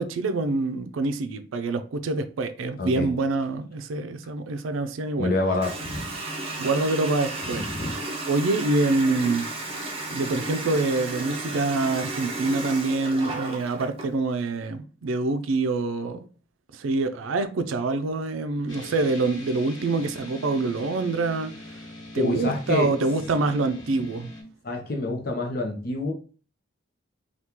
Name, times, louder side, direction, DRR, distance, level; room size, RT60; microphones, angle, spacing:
voice 1, 0.0-5.3 6.6-7.6 8.3-9.5 10.1-16.3 16.7-21.5 22.1-24.3, right 3 dB, 90° right, 0.4 m, -26 dB
voice 2, 2.8-3.1 5.2-6.0 7.5-7.9 22.1-22.9 24.6-26.1, left 2 dB, 50° left, 0.7 m, -27 dB
Water tap faucet, 5.6-14.1, right 2 dB, 30° right, 0.6 m, -33 dB
sound 1, 18.7-24.4, left 1 dB, 90° left, 1.0 m, -42 dB
2.9 x 2.3 x 3.5 m
head